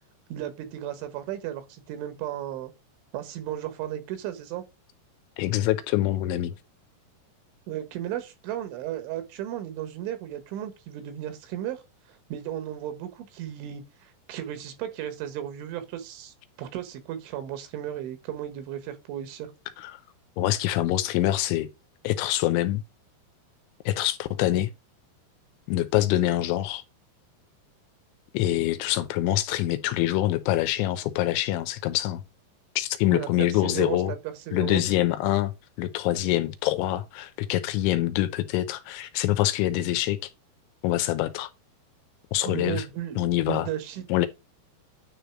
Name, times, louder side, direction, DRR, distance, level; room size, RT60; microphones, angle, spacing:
voice 1, 0.3-2.7 3.1-4.6 7.7-11.8 12.3-19.5 33.1-34.2 34.5-34.8 42.5-44.0, right 11 dB, 85° right, 3.8 m, -35 dB
voice 2, 5.4-6.5 19.8-19.9 20.4-21.7 22.0-22.8 23.9-24.7 25.7-26.8 28.3-32.2 32.8-34.1 34.5-40.2 40.8-41.5 42.3-42.8 43.2-43.7 44.1-44.3, left 14 dB, 85° left, 3.2 m, -25 dB
10.0 x 3.4 x 6.0 m
omnidirectional pair, 5.4 m